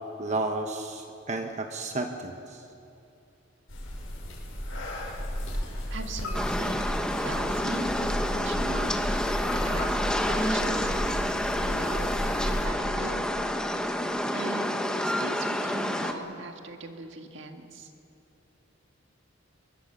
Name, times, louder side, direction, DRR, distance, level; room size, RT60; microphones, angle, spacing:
voice 1, 0.2-2.6, right 2 dB, 35° right, 4 dB, 1.3 m, -32 dB
sound 1, 3.7-12.7, equal, 85° left, 6.0 m, -34 dB
voice 2, 5.9-6.9 7.2-11.3 11.6-13.2 14.3-17.9, right 3 dB, 65° right, 4 dB, 1.9 m, -40 dB
sound 2, 6.3-16.1, left 1 dB, 5° left, 1.2 m, -28 dB
24.0 x 22.5 x 6.9 m, 2.6 s
head